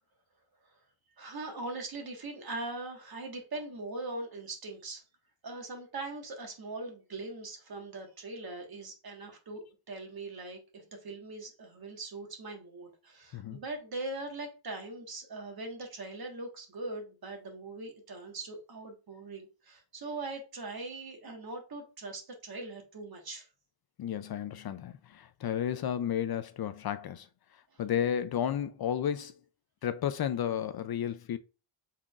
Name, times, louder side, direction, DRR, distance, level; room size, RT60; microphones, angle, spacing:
voice 1, 1.2-5.0 5.4-9.6 9.9-23.5 27.7-27.8, right 2 dB, 50° right, 1.5 m, -41 dB
voice 2, 24.0-27.3 27.8-29.4 29.8-31.4, left 9 dB, 55° left, 0.5 m, -32 dB
5.7 x 3.7 x 2.4 m
wide cardioid pair, 125°, 46 cm